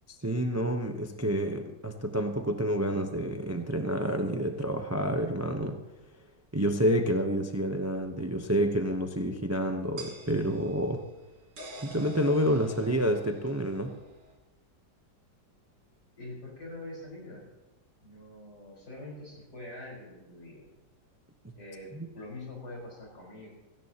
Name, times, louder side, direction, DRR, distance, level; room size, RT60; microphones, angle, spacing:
voice 1, 0.2-5.8 6.5-11.0 11.8-13.9 21.9-22.1, equal, 20° right, 5 dB, 0.4 m, -28 dB
sound 1, 10.0-14.4, right 1 dB, 80° right, 3.3 m, -47 dB
voice 2, 16.2-17.5 18.0-20.7 21.6-23.5, left 2 dB, 70° left, -3 dB, 5.1 m, -44 dB
17.5 x 15.5 x 2.9 m, 1.1 s
omnidirectional pair, 1.8 m